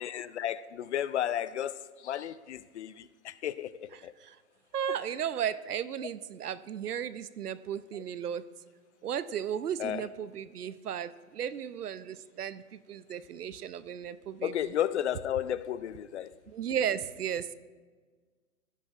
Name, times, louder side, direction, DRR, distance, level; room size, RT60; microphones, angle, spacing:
voice 1, 0.0-4.1 9.8-10.1 14.4-16.3, left 11 dB, 50° left, 17 dB, 0.5 m, -33 dB
voice 2, 4.7-8.5 9.0-14.7 16.5-17.5, right 9 dB, 80° right, 15 dB, 0.7 m, -35 dB
16.5 x 10.5 x 2.4 m, 1.5 s
hypercardioid pair, 125°, 45 cm